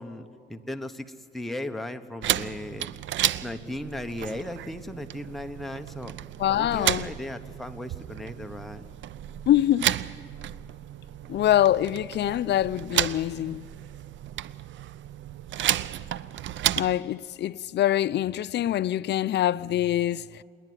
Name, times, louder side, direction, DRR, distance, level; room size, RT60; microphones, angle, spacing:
voice 1, 0.0-2.9 3.4-6.1 6.5-8.9, left 1 dB, ahead, 1.0 m, -36 dB
sound 1, 2.2-17.0, right 12 dB, 70° right, 0.6 m, -32 dB
voice 2, 6.4-7.1 9.5-9.9 11.3-13.7 16.8-20.2, left 12 dB, 60° left, 0.5 m, -24 dB
27.5 x 11.0 x 9.3 m
cardioid pair, 90°, 20 cm